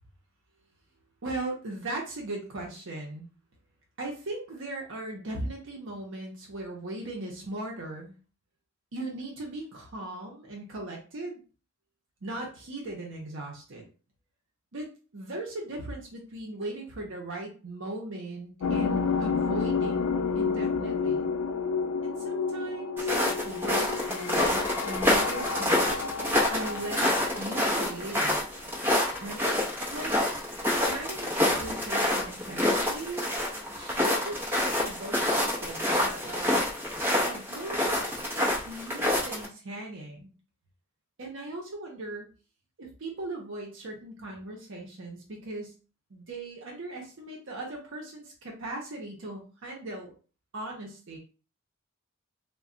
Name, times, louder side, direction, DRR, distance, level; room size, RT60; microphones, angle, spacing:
voice 1, 1.2-3.3 4.0-8.1 8.9-11.4 12.2-13.8 14.7-20.0 20.3-21.3 22.0-23.1 23.4-26.1 26.5-28.4 29.2-30.1 30.8-33.2 33.7-36.7 37.3-40.3 41.2-42.3 42.8-45.7 46.1-50.1 50.5-51.2, right 2 dB, 60° right, -1 dB, 0.7 m, -38 dB
sound 1, 18.6-28.5, left 5 dB, 90° left, 0.4 m, -30 dB
sound 2, 23.0-39.5, left 1 dB, 10° right, 0.7 m, -27 dB
2.2 x 2.2 x 3.7 m, 0.36 s
head